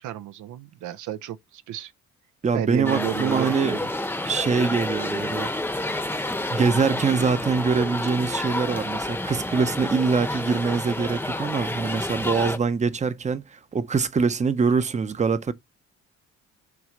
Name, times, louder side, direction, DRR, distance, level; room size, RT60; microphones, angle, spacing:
voice 1, 0.0-1.9 2.5-3.9, right 11 dB, 80° right, 0.6 m, -32 dB
voice 2, 2.4-3.8 4.2-15.5, right 5 dB, 25° right, 0.7 m, -24 dB
sound 1, 2.8-12.6, left 1 dB, 5° left, 0.8 m, -29 dB
5.9 x 3.2 x 5.1 m
cardioid pair, 90°, 30 cm